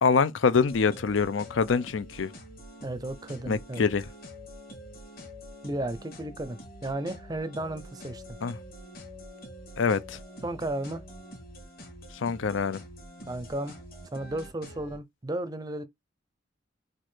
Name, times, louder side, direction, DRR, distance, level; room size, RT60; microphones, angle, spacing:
voice 1, 0.0-2.3 3.5-4.1 8.4-8.5 9.8-10.2 12.1-12.8, left 5 dB, 80° left, 0.5 m, -25 dB
sound 1, 0.6-15.0, equal, 50° left, 1.9 m, -46 dB
voice 2, 2.8-3.8 5.6-8.2 10.4-11.0 13.3-13.8 14.1-15.8, right 1 dB, 20° right, 0.5 m, -34 dB
4.5 x 2.4 x 4.4 m
head